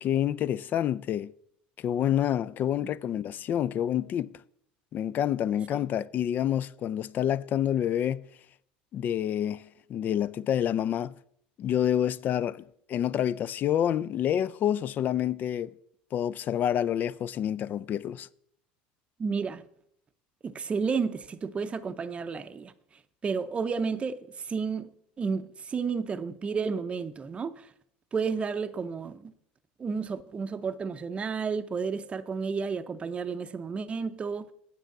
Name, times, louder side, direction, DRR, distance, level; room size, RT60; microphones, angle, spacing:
voice 1, 0.0-1.3 1.8-4.3 4.9-8.2 8.9-11.1 11.6-15.7 16.1-18.3, left 10 dB, 45° left, 0.4 m, -28 dB
voice 2, 19.2-19.7 20.4-22.7 23.2-27.7 28.1-29.3 29.8-34.5, right 5 dB, 25° right, 0.6 m, -32 dB
9.1 x 6.8 x 5.9 m
hypercardioid pair, 85°, 4 cm